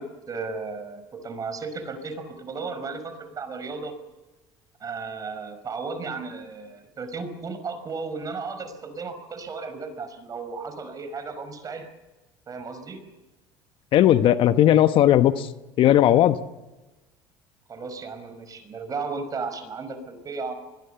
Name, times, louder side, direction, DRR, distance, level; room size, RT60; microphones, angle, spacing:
voice 1, 0.0-3.9 4.8-11.9 12.5-13.0 17.7-20.5, right 4 dB, 35° right, 9 dB, 5.3 m, -34 dB
voice 2, 13.9-15.5 15.8-16.4, left 12 dB, 60° left, 11 dB, 1.1 m, -17 dB
25.5 x 21.5 x 7.0 m, 1.1 s
supercardioid pair, 90°, 10 cm